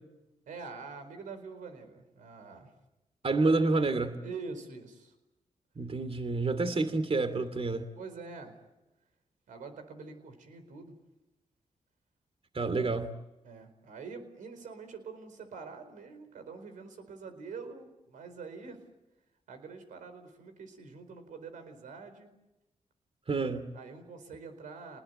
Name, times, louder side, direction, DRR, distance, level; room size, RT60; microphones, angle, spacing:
voice 1, 0.5-2.7 4.2-5.1 8.0-8.5 9.5-10.9 13.4-18.8 19.5-22.3 23.7-25.0, right 4 dB, 85° right, 8 dB, 4.6 m, -45 dB
voice 2, 3.2-4.2 5.8-7.8 12.5-13.1 23.3-23.6, right 3 dB, 45° right, 11 dB, 2.9 m, -28 dB
29.0 x 20.0 x 9.4 m, 0.98 s
cardioid pair, 50°, 13 cm